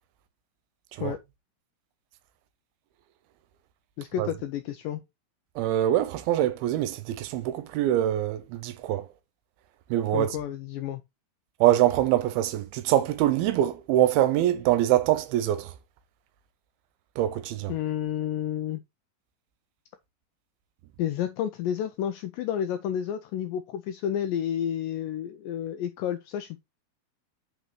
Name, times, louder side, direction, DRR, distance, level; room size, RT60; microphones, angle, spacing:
voice 1, 4.0-5.0 10.1-11.0 17.7-18.8 21.0-26.6, left 10 dB, 85° left, 1.9 m, -30 dB
voice 2, 5.6-9.1 9.9-10.3 11.6-15.7 17.2-17.7, right 13 dB, 85° right, 2.5 m, -24 dB
8.0 x 4.0 x 3.1 m
omnidirectional pair, 4.4 m